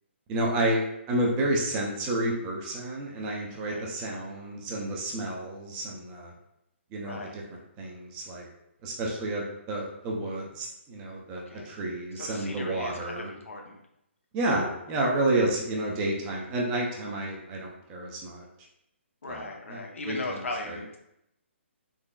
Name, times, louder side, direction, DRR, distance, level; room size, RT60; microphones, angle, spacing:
voice 1, 0.3-6.3 6.9-8.5 8.8-13.3 14.3-18.5 19.3-20.8, right 1 dB, 20° right, -1 dB, 0.5 m, -30 dB
voice 2, 7.0-7.3 11.5-11.7 12.2-13.8 19.2-21.0, left 2 dB, 80° left, 1 dB, 0.7 m, -38 dB
3.8 x 3.0 x 2.3 m, 0.81 s
hypercardioid pair, 155°, 7 cm